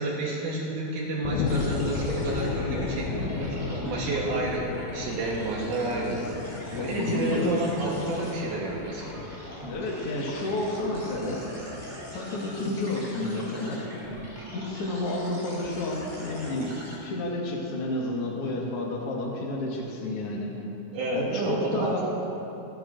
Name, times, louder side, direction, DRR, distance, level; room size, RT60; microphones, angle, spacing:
voice 1, 0.0-6.2 6.8-9.1 20.9-22.0, right 2 dB, 75° right, -3 dB, 2.6 m, -30 dB
sound 1, 1.2-12.2 12.7-12.8, left 5 dB, 75° left, 2.0 m, -35 dB
sound 2, 1.5-17.0, equal, 10° right, 2.8 m, -42 dB
voice 2, 6.7-7.7 9.7-11.4 12.1-13.9 14.5-16.7 17.0-20.5 21.1-22.0, left 2 dB, 50° left, -2 dB, 2.3 m, -30 dB
27.0 x 9.4 x 2.6 m, 3.0 s
omnidirectional pair, 3.8 m